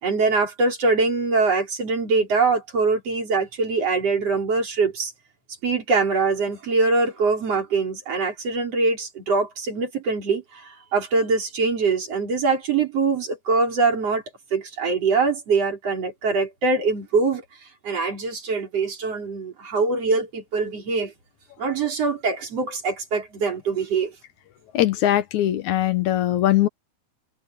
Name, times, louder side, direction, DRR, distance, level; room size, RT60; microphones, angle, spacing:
voice 1, 0.0-5.1 5.6-14.2 14.5-17.4 17.8-21.1 21.6-24.1, right 4 dB, 40° right, 5.1 m, -23 dB
voice 2, 24.7-26.7, left 13 dB, 70° left, 1.8 m, -21 dB
omnidirectional pair, 4.5 m